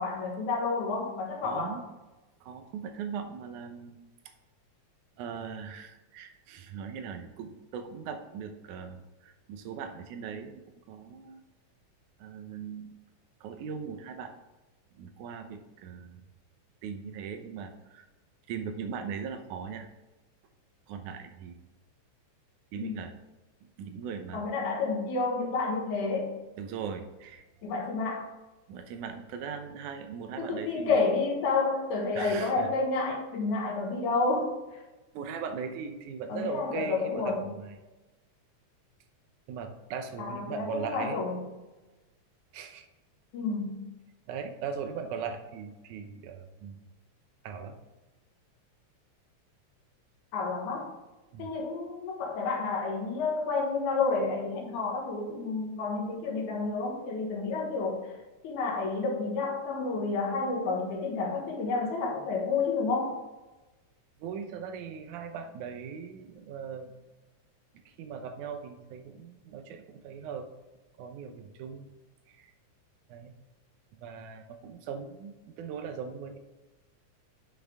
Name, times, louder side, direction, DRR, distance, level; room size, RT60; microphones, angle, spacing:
voice 1, 0.0-1.8 22.8-23.0 24.3-26.4 27.6-28.3 30.4-34.5 36.3-37.4 40.2-41.5 43.3-43.9 50.3-50.9 51.4-58.1 58.4-63.2, left 3 dB, 80° left, -1 dB, 3.0 m, -30 dB
voice 2, 1.4-1.8 2.4-4.0 5.2-10.6 10.9-11.4 12.2-13.0 13.4-14.3 14.9-16.2 16.8-18.1 18.5-19.9 20.9-21.6 22.7-23.1 23.8-24.5 26.6-27.5 28.7-31.0 32.1-32.7 35.1-37.8 39.5-41.2 42.5-42.8 44.3-46.8 47.4-47.8 51.3-51.5 64.2-66.9 67.9-70.5 71.0-71.9 72.3-72.5 73.1-73.3 74.0-76.4, right 6 dB, 80° right, 7 dB, 2.3 m, -39 dB
10.0 x 5.9 x 3.5 m, 1.1 s
omnidirectional pair, 3.4 m